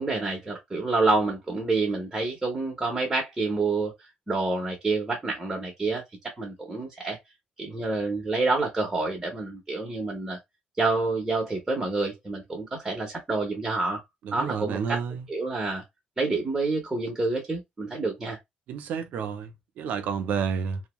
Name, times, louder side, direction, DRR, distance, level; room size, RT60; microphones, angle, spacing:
voice 1, 0.0-3.9 4.3-6.0 6.4-7.2 7.6-10.4 10.8-14.0 14.3-15.0 15.3-15.8 16.2-18.4, right 3 dB, 10° right, 0.7 m, -28 dB
voice 2, 14.2-15.3 18.7-20.8, right 6 dB, 65° right, 0.5 m, -30 dB
2.7 x 2.1 x 2.9 m
cardioid pair, 170°, 3 cm